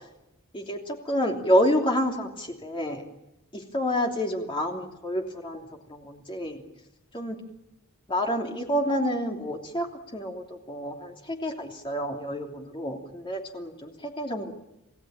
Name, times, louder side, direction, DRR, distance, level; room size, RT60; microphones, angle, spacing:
voice 1, 0.5-3.0 3.5-6.6 7.1-7.4 8.1-14.5, equal, 25° left, 1 dB, 3.0 m, -28 dB
27.5 x 17.5 x 8.8 m, 0.89 s
head